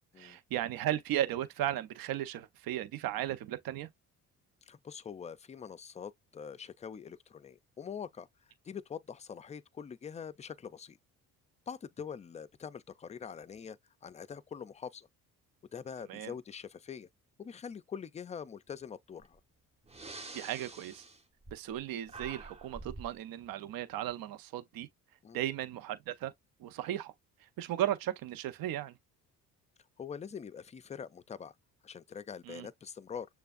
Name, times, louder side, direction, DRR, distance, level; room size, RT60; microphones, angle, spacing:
voice 1, 0.2-3.9 16.1-16.3 20.3-21.0 21.5-24.9 25.3-26.3 26.6-27.1 27.6-28.9 32.5-32.7, right 12 dB, 70° right, 0.7 m, -35 dB
voice 2, 4.6-11.0 11.7-15.1 15.7-17.1 17.4-19.4 25.2-25.4 30.0-31.5 31.8-33.3, left 7 dB, 20° left, 0.3 m, -44 dB
Breathing, 19.2-19.4 19.8-21.8 22.1-23.2, right 3 dB, 15° right, 1.1 m, -47 dB
6.7 x 2.3 x 2.5 m
supercardioid pair, 75°, 36 cm